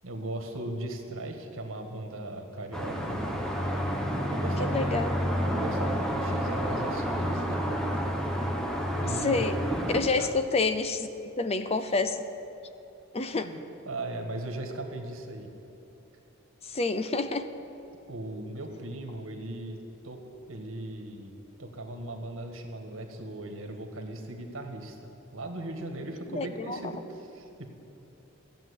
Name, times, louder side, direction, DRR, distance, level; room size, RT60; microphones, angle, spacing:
voice 1, 0.0-3.2 4.3-5.0 5.5-8.1 9.0-9.5 10.2-10.3 13.3-13.6 13.8-15.5 18.1-19.8 20.0-20.2 20.5-21.3 21.6-25.0 25.3-27.7, right 1 dB, 75° right, 4 dB, 1.7 m, -38 dB
sound 1, 2.7-10.0, equal, 5° left, 1.2 m, -29 dB
voice 2, 4.6-5.1 9.2-9.6 9.9-11.1 11.4-12.2 13.1-13.5 16.7-17.5 26.3-26.8, left 3 dB, 30° left, 11 dB, 0.6 m, -28 dB
14.5 x 7.6 x 9.7 m, 2.9 s
head